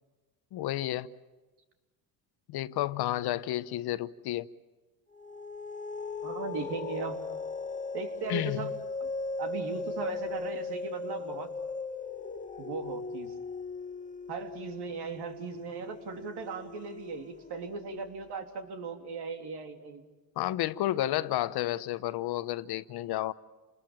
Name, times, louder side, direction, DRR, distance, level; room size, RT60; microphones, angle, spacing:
voice 1, 0.5-1.1 2.5-4.5 8.3-8.7 20.4-23.3, left 14 dB, 55° left, 0.9 m, -31 dB
sound 1, 5.1-17.9, left 3 dB, 15° left, 1.2 m, -38 dB
voice 2, 6.2-7.2 7.9-8.7 9.0-9.1 9.4-11.5 12.6-13.3 14.3-20.1, right 4 dB, 60° right, 3.3 m, -38 dB
29.0 x 20.5 x 7.4 m
supercardioid pair, 105°, 45 cm